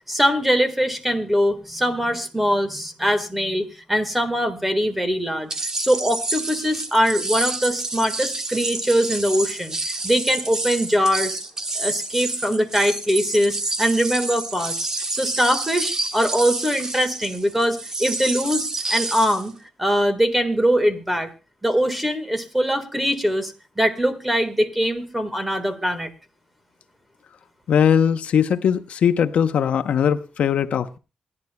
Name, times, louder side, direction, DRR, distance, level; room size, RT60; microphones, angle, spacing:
voice 1, 0.1-11.4 11.7-21.3 21.6-26.1, equal, 5° right, 10 dB, 1.5 m, -22 dB
sound 1, 5.5-19.5, right 2 dB, 25° right, 1.5 m, -28 dB
voice 2, 27.7-31.0, left 8 dB, 70° left, 10 dB, 0.7 m, -20 dB
28.0 x 11.0 x 2.2 m, 0.30 s
wide cardioid pair, 140°, 2 cm